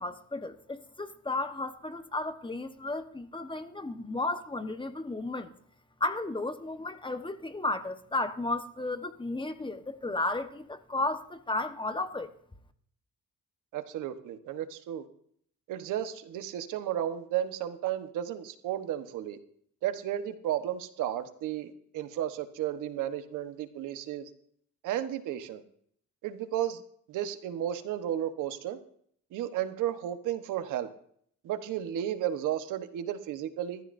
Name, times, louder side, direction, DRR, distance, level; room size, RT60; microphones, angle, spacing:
voice 1, 0.0-5.5 6.0-12.3, left 2 dB, 15° left, 1.2 m, -33 dB
voice 2, 13.7-15.0 15.7-19.4 19.8-24.3 24.8-25.6 26.2-26.8 27.1-28.8 29.3-30.9 31.4-33.8, right 11 dB, 90° right, 1.2 m, -33 dB
21.0 x 14.0 x 2.7 m
cardioid pair, 90°, 30 cm